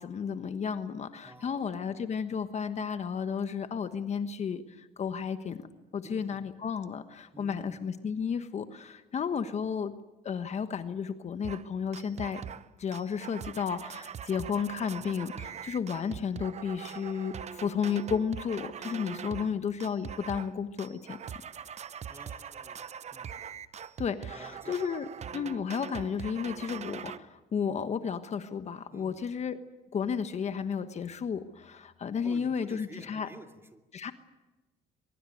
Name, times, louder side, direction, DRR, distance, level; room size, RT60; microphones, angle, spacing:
voice 1, 0.0-5.6 5.9-9.9 10.2-12.4 12.8-21.2 24.0-29.6 29.9-33.3 33.9-34.1, left 6 dB, 40° left, 9 dB, 1.4 m, -33 dB
voice 2, 1.2-1.9 6.0-6.4 7.3-7.8 12.4-12.6 15.5-15.6 19.4-19.6 22.1-24.0 24.3-24.8 25.3-25.6 28.9-29.1 32.2-33.8, right 1 dB, 15° right, 5 dB, 2.6 m, -51 dB
sound 1, 11.4-11.7 11.9-12.7 12.9-19.5 19.8-20.5 20.8-27.2, right 8 dB, 40° right, 1.0 m, -42 dB
23.5 x 22.5 x 9.4 m, 1.1 s
cardioid pair, 110°, 17 cm